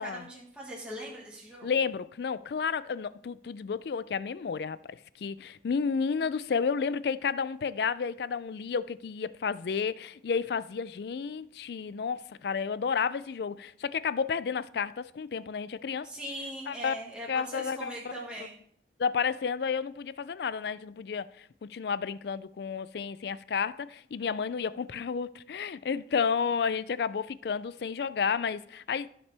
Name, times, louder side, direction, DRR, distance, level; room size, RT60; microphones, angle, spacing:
voice 1, 0.0-1.7 16.0-18.5, equal, 5° right, 1.6 m, -40 dB
voice 2, 1.6-16.1 16.7-16.9 17.3-18.3 19.0-29.1, left 6 dB, 60° left, 0.4 m, -31 dB
15.5 x 5.8 x 3.4 m
head